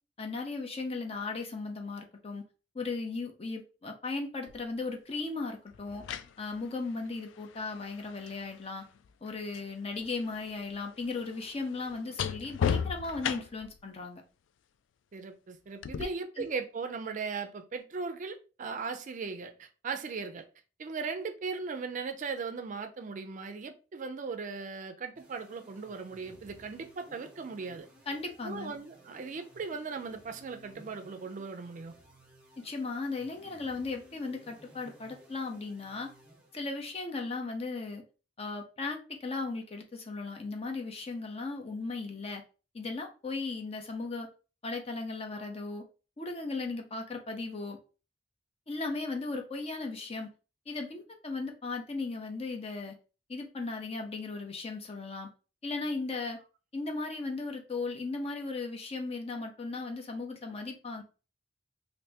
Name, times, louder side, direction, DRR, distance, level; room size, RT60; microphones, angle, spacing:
voice 1, 0.2-2.4 2.7-6.0 6.4-8.8 9.2-14.2 16.0-16.1 16.4-16.5 28.1-28.7 32.6-36.1 36.5-38.0 38.4-42.4 42.7-44.3 44.6-45.8 46.2-47.8 48.7-50.3 50.7-52.9 53.3-55.3 55.6-56.4 56.7-61.0, left 3 dB, 35° left, 0.6 m, -36 dB
sound 1, 4.5-4.6 5.7-9.7 10.0-13.8 15.8-16.0, left 8 dB, 90° left, 0.3 m, -37 dB
voice 2, 15.1-20.5 20.8-27.9 28.4-31.9, right 4 dB, 45° right, 0.4 m, -38 dB
sound 2, 25.1-36.9, right 1 dB, 5° right, 0.8 m, -57 dB
2.8 x 2.6 x 3.3 m
head